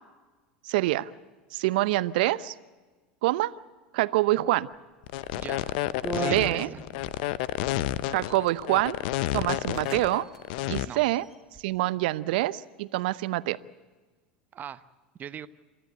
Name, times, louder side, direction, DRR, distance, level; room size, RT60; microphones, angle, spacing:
voice 1, 0.6-1.1 1.5-2.5 3.2-3.5 3.9-4.7 6.3-6.7 8.1-9.0 9.3-10.3 10.7-11.2 11.6-13.6, right 17 dB, 65° right, 18 dB, 0.8 m, -26 dB
sound 1, 5.0-10.8, left 15 dB, 65° left, 0.8 m, -30 dB
sound 2, 5.2-5.4 6.0-7.2 8.1-8.6 9.2-9.3 9.5-10.0 10.3-10.4 10.9-11.6, right 3 dB, 10° right, 2.8 m, -37 dB
voice 2, 5.3-5.8 6.1-6.8 10.9-11.0 14.5-14.9 15.2-15.5, right 9 dB, 35° right, 13 dB, 1.0 m, -40 dB
27.5 x 13.5 x 8.2 m, 1.3 s
hypercardioid pair, 90°, 5 cm